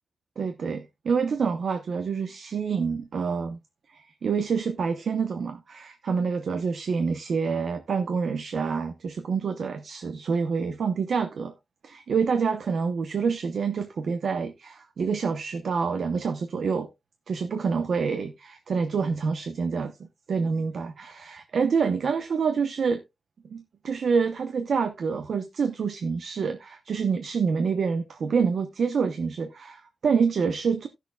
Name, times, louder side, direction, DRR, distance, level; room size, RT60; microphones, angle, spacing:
voice 1, 0.4-3.6 3.9-11.5 11.8-16.9 17.3-23.0 23.5-30.9, right 5 dB, 80° right, 0.8 m, -27 dB
17.0 x 6.5 x 2.3 m
wide cardioid pair, 150°, 0 cm